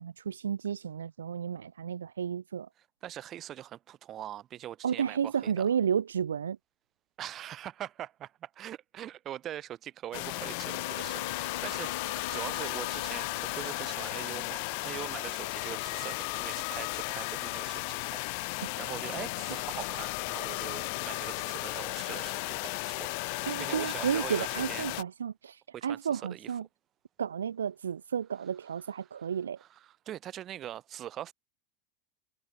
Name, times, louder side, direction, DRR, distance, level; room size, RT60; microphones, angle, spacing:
voice 1, 0.0-2.7 4.8-6.6 18.6-18.7 23.5-26.7 27.2-29.6, right 8 dB, 75° right, 0.9 m, -32 dB
voice 2, 3.0-5.6 7.2-24.9 25.7-26.5 29.6-31.3, right 12 dB, 35° right, 5.9 m, -42 dB
sound 1, 10.1-25.0, left 32 dB, 50° left, 3.4 m, -35 dB
Wind instrument woodwind instrument, 10.7-14.2, left 8 dB, 75° left, 1.6 m, -44 dB
figure-of-eight pair, 90°, 0 cm